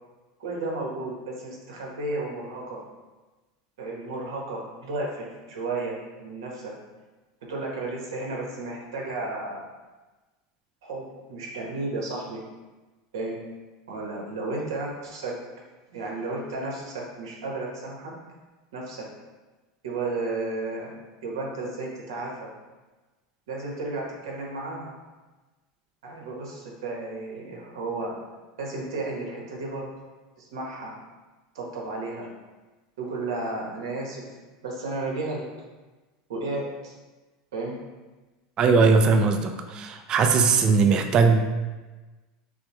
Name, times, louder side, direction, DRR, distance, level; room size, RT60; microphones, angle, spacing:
voice 1, 0.4-2.8 3.8-6.7 7.4-9.7 10.8-12.4 13.1-13.4 13.9-15.4 15.9-18.1 18.7-19.1 19.8-20.9 21.2-22.5 23.5-24.9 26.0-28.1 28.6-29.9 30.4-30.9 31.5-32.3 33.0-34.3 34.6-35.5 36.3-36.9 37.5-37.8, right 2 dB, 90° right, -1 dB, 1.2 m, -33 dB
voice 2, 38.6-41.4, right 4 dB, 35° right, 5 dB, 0.4 m, -20 dB
6.2 x 2.2 x 3.0 m, 1.2 s
supercardioid pair, 125°, 2 cm